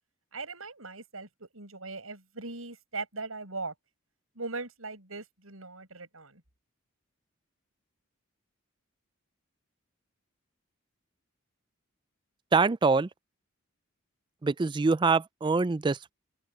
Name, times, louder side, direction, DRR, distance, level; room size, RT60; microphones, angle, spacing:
voice 1, 0.3-3.7 4.4-6.4, right 3 dB, 80° right, 7.3 m, -39 dB
voice 2, 12.5-13.1 14.4-16.1, right 4 dB, 20° right, 0.3 m, -24 dB
open air
head